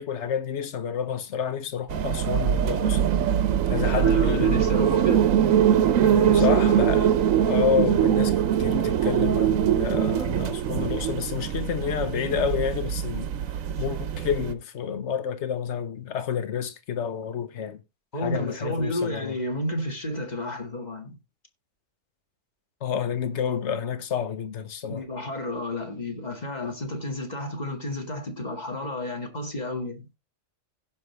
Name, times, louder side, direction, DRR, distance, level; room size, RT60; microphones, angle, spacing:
voice 1, 0.0-3.0 3.7-5.0 6.3-7.1 7.4-13.3 13.8-17.8 18.2-19.3 22.8-25.0, left 8 dB, 60° left, 1.3 m, -29 dB
sound 1, 1.9-14.5, right 9 dB, 80° right, 1.2 m, -22 dB
voice 2, 3.8-5.5 6.0-6.9 18.1-21.2 24.9-30.1, left 1 dB, 30° left, 2.0 m, -32 dB
16.5 x 5.5 x 3.2 m
omnidirectional pair, 1.4 m